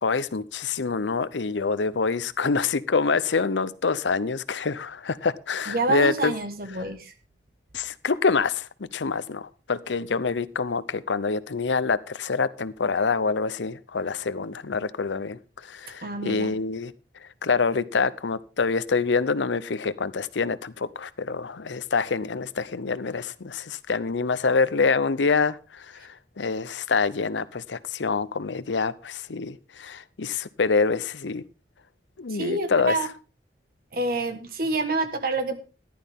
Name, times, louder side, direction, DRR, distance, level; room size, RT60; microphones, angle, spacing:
voice 1, 0.0-6.3 7.7-16.9 17.4-31.4 32.2-33.0, left 4 dB, 80° left, 0.7 m, -26 dB
voice 2, 5.7-7.1 16.0-16.5 32.3-33.1 33.9-35.6, right 2 dB, 50° right, 1.4 m, -27 dB
14.5 x 11.5 x 3.6 m
head